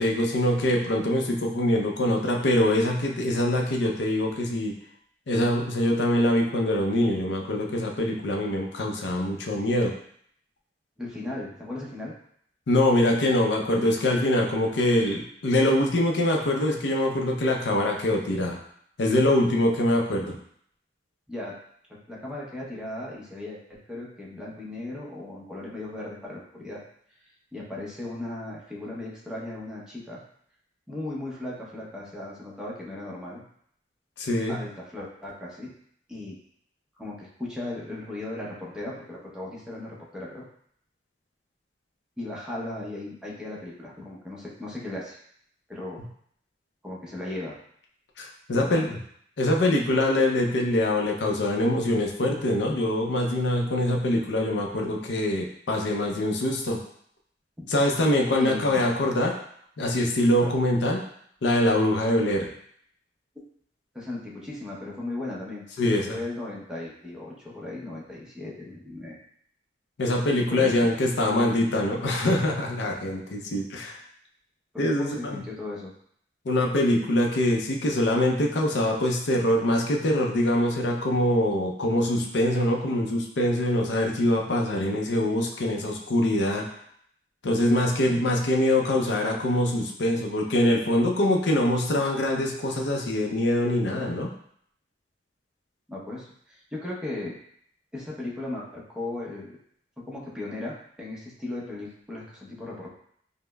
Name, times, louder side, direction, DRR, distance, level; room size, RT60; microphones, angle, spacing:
voice 1, 0.0-4.7 5.3-9.9 12.7-18.6 19.0-20.4 34.2-34.6 48.2-49.0 49.4-56.8 57.7-59.3 59.8-61.0 61.4-62.5 65.8-66.2 70.0-74.0 74.8-75.4 76.5-86.6 87.4-94.3, left 1 dB, 70° left, 1 dB, 0.5 m, -24 dB
voice 2, 11.0-12.1 21.3-21.5 22.1-26.8 27.5-30.2 30.9-33.4 34.5-35.7 36.1-36.3 37.0-40.4 42.2-45.2 45.7-46.0 46.8-47.6 48.5-48.8 57.6-57.7 58.4-58.9 60.4-60.5 63.9-69.2 70.5-70.9 74.7-75.9 95.9-97.4 97.9-99.6 100.0-102.9, left 2 dB, 5° right, -5 dB, 0.7 m, -36 dB
5.0 x 2.1 x 2.2 m, 0.65 s
head